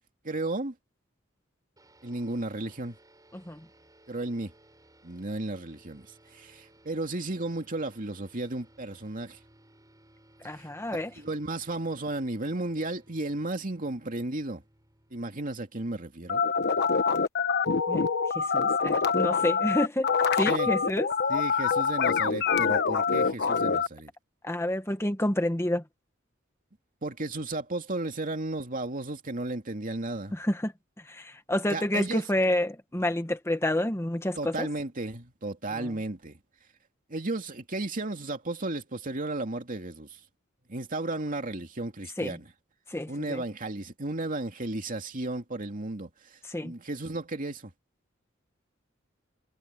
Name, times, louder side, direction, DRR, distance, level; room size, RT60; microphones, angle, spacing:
voice 1, 0.2-0.7 2.0-3.0 4.1-4.5 5.0-6.1 6.3-9.4 10.5-10.7 11.2-14.6 15.1-16.4 20.4-20.7 21.3-24.1 27.0-30.3 31.7-32.2 34.4-36.4 37.1-40.2 40.7-42.5 43.1-47.7, right 2 dB, 45° right, 2.7 m, -34 dB
sound 1, 1.8-16.6, right 1 dB, 20° right, 7.9 m, -60 dB
voice 2, 3.3-3.6 10.4-11.1 17.9-18.1 18.3-20.1 20.4-21.1 24.4-25.8 30.3-30.7 31.0-34.7 35.7-35.9 42.2-42.4 42.9-43.4 46.4-46.7, left 1 dB, 15° left, 1.3 m, -29 dB
sound 2, 16.3-23.9, left 5 dB, 55° left, 1.1 m, -25 dB
head